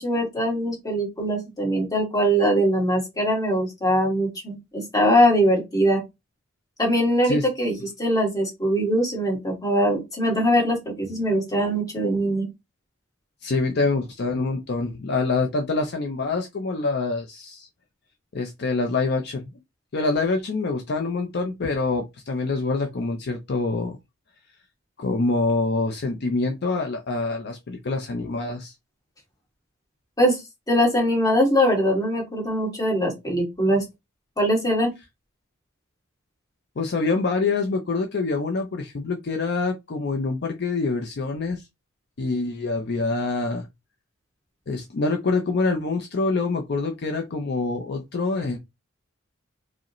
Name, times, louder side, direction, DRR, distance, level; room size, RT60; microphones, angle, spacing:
voice 1, 0.0-6.0 6.8-12.5 30.2-30.4 30.7-33.8 34.4-34.9, equal, 20° left, 1.7 m, -22 dB
voice 2, 13.4-17.7 18.3-19.5 19.9-24.0 25.0-28.7 36.8-41.6 42.2-43.7 44.7-48.6, left 3 dB, 55° left, 0.5 m, -25 dB
4.7 x 2.1 x 2.9 m
head